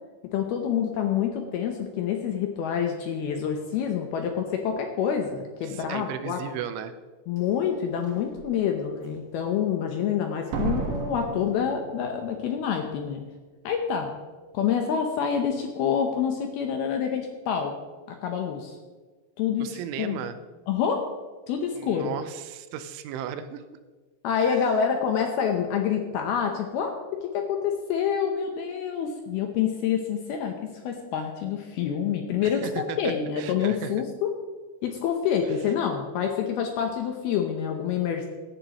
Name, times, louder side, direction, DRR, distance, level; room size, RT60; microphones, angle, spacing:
voice 1, 0.3-6.4 7.3-13.2 13.6-14.1 14.5-17.7 18.1-18.7 19.4-20.2 20.7-21.0 21.5-22.1 24.2-26.9 27.2-30.6 30.8-34.3 34.8-38.3, left 8 dB, 75° left, 4 dB, 2.4 m, -27 dB
voice 2, 5.6-7.0 19.6-20.4 21.7-23.6 24.4-24.8 32.4-33.9, right 9 dB, 90° right, 10 dB, 3.2 m, -36 dB
Slam, 7.4-7.5 8.1-8.4 10.5-12.4 12.7-12.8, right 5 dB, 75° right, 3.6 m, -33 dB
17.0 x 11.5 x 3.0 m, 1.4 s
omnidirectional pair, 5.4 m